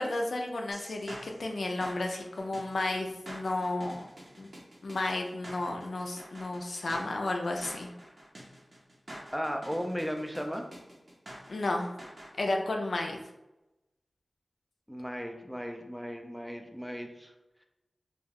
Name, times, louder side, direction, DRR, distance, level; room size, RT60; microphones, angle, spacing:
voice 1, 0.0-4.0 4.4-4.5 4.8-7.9 11.5-12.0 12.4-13.2, left 2 dB, 80° left, 2 dB, 0.3 m, -32 dB
sound 1, 0.7-12.3, right 1 dB, 50° right, 0.7 m, -47 dB
voice 2, 9.3-10.6 14.9-17.3, equal, 5° right, 3 dB, 0.3 m, -36 dB
2.3 x 2.2 x 3.2 m, 0.97 s
wide cardioid pair, 65°, 0 cm